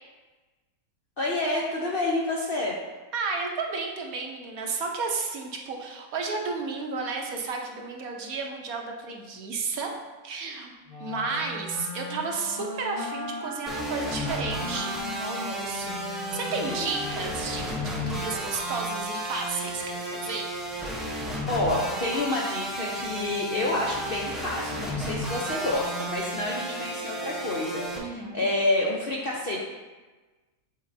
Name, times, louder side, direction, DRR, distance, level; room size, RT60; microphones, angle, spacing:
voice 1, 1.2-2.8 16.5-16.9 18.1-18.2 21.5-29.6, left 2 dB, 55° left, -3 dB, 0.6 m, -28 dB
voice 2, 3.1-9.9 10.2-10.7 11.0-20.5 28.0-28.5, right 4 dB, 70° right, 1 dB, 1.2 m, -32 dB
Wind instrument woodwind instrument, 10.9-18.3, left 2 dB, 30° left, 0.9 m, -38 dB
sound 1, 13.7-28.0, right 1 dB, ahead, 0.4 m, -33 dB
7.9 x 4.5 x 2.6 m, 1.3 s
omnidirectional pair, 1.6 m